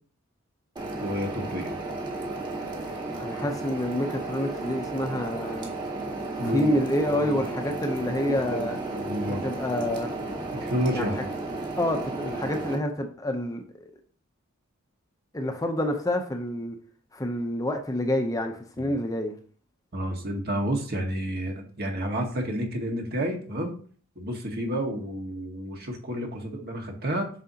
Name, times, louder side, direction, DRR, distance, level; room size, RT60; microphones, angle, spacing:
sound 1, 0.8-12.8, right 2 dB, 20° right, 1.6 m, -33 dB
voice 1, 1.0-1.7 6.4-6.7 7.1-7.4 8.5-9.5 10.6-11.3 18.8-18.9 19.9-23.7 24.2-27.3, equal, 50° right, 1.7 m, -30 dB
voice 2, 3.2-5.7 6.5-8.8 9.3-10.1 10.9-11.1 11.8-13.9 15.3-16.8 17.1-19.4, left 1 dB, 15° left, 0.7 m, -28 dB
7.4 x 6.1 x 2.9 m
head